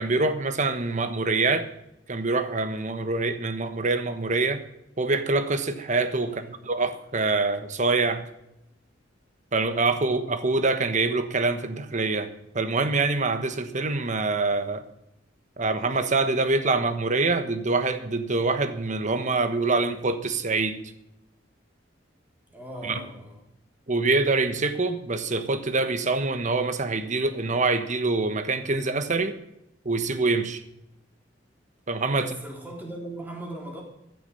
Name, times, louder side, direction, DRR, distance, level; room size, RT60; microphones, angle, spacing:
voice 1, 0.0-1.7 2.1-4.6 5.0-8.3 9.5-14.8 15.6-20.8 22.8-23.0 23.9-29.3 29.8-30.6 31.9-32.3, right 3 dB, 45° right, 10 dB, 1.3 m, -25 dB
voice 2, 6.2-6.7 22.5-23.4 32.1-33.8, right 1 dB, 10° right, -1 dB, 3.9 m, -39 dB
15.0 x 10.5 x 5.6 m, 0.84 s
head